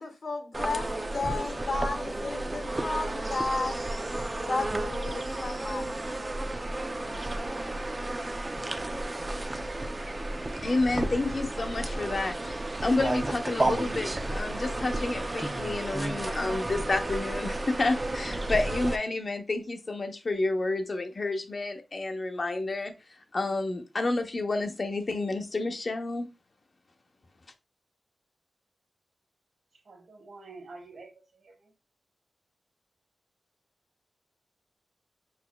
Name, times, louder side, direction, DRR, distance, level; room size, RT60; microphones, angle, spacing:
voice 1, 0.0-3.8 4.4-5.9, left 3 dB, 60° left, 1.4 m, -33 dB
sound 1, 0.5-19.0, right 2 dB, 25° right, 0.5 m, -32 dB
voice 2, 10.6-22.9 23.3-26.3, left 2 dB, 40° left, 0.8 m, -30 dB
voice 3, 29.8-31.7, right 3 dB, 70° right, 1.5 m, -48 dB
5.5 x 4.2 x 2.3 m
wide cardioid pair, 125°, 0 cm